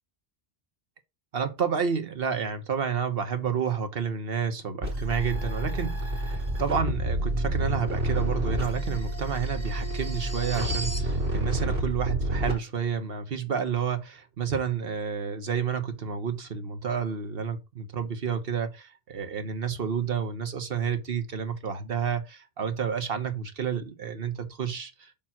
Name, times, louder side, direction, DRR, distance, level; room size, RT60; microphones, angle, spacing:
voice 1, 1.3-25.1, right 7 dB, 70° right, 1.2 m, -30 dB
sound 1, 4.8-12.5, right 1 dB, 85° right, 2.5 m, -29 dB
sound 2, 6.3-11.1, right 1 dB, 15° right, 1.0 m, -38 dB
6.7 x 2.9 x 5.8 m
omnidirectional pair, 1.0 m